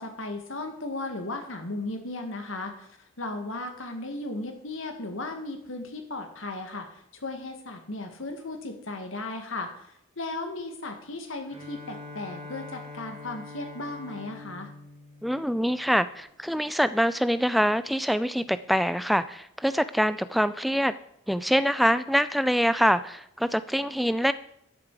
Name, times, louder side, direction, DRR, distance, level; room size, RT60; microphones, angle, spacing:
voice 1, 0.0-14.7, left 2 dB, 75° left, 5 dB, 1.8 m, -36 dB
Bowed string instrument, 11.5-16.2, left 2 dB, 30° right, 2.2 m, -44 dB
voice 2, 15.2-20.9 21.3-24.3, equal, ahead, 14 dB, 0.3 m, -24 dB
12.5 x 7.4 x 4.7 m, 0.75 s
head